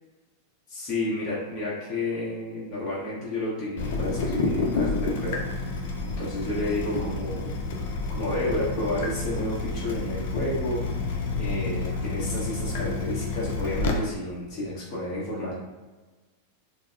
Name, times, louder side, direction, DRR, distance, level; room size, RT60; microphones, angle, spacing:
voice 1, 0.7-5.7 6.0-7.5 8.1-10.8 11.3-15.5, left 1 dB, 30° left, -8 dB, 1.1 m, -31 dB
Water tap faucet / Drip, 3.8-13.9, left 3 dB, 55° left, 0.5 m, -29 dB
3.8 x 2.2 x 2.6 m, 1.2 s
figure-of-eight pair, 90°, 0 cm